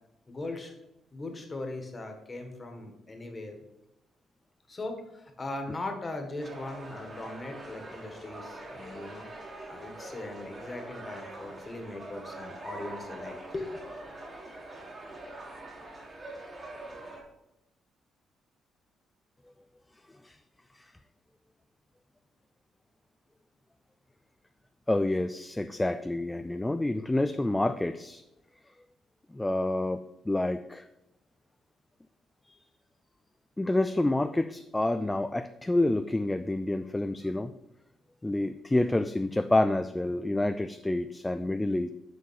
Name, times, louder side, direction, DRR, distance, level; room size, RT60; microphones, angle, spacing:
voice 1, 0.3-0.8 1.1-3.6 4.7-9.3 9.7-13.8, left 2 dB, 30° left, 4 dB, 1.6 m, -39 dB
sound 1, 6.4-17.2, right 2 dB, 30° right, 2.1 m, -44 dB
voice 2, 24.9-28.2 29.3-30.9 33.6-37.5 38.2-41.9, left 2 dB, 10° left, 10 dB, 0.4 m, -28 dB
6.8 x 4.7 x 6.4 m, 0.88 s
cardioid pair, 90°, 0 cm